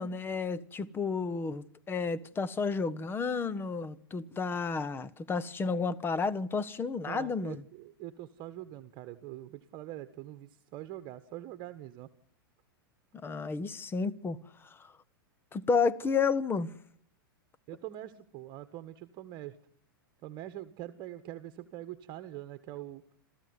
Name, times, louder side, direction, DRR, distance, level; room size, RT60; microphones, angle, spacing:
voice 1, 0.0-7.6 13.2-14.4 15.5-16.7, left 4 dB, 20° left, 1.2 m, -31 dB
voice 2, 7.0-12.1 17.7-19.6 20.2-23.0, right 13 dB, 40° right, 1.5 m, -44 dB
27.0 x 15.0 x 9.8 m
hypercardioid pair, 105°, 12 cm